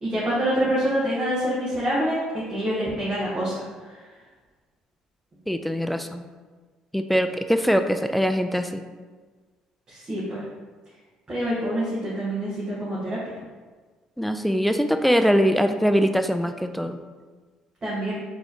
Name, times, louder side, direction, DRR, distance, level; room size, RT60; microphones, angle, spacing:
voice 1, 0.0-3.6 9.9-10.4 11.3-13.3 17.8-18.1, equal, 35° right, -9 dB, 1.5 m, -26 dB
voice 2, 5.5-6.2 6.9-8.8 14.2-17.0, equal, 5° left, 8 dB, 0.3 m, -22 dB
4.3 x 3.2 x 2.8 m, 1.4 s
hypercardioid pair, 60°, 3 cm